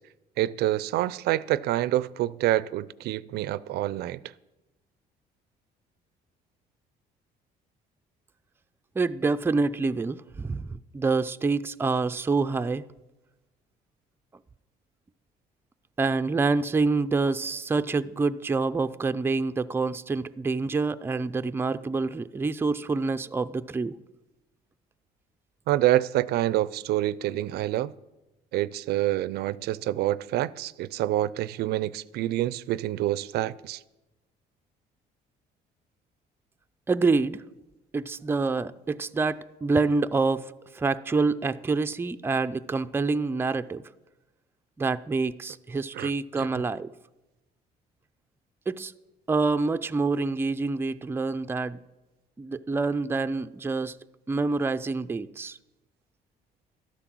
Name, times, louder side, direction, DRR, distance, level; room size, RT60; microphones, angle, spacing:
voice 1, 0.4-4.2 25.7-27.9 28.5-33.8 45.9-46.1 46.4-46.5, right 14 dB, 75° right, 0.4 m, -27 dB
voice 2, 9.0-12.8 16.0-23.9 36.9-37.4 37.9-43.8 44.8-46.9 48.7-48.9 49.3-51.8 52.4-54.0 54.3-55.6, right 3 dB, 15° right, 0.4 m, -27 dB
12.5 x 10.0 x 6.1 m
cardioid pair, 110°, 17 cm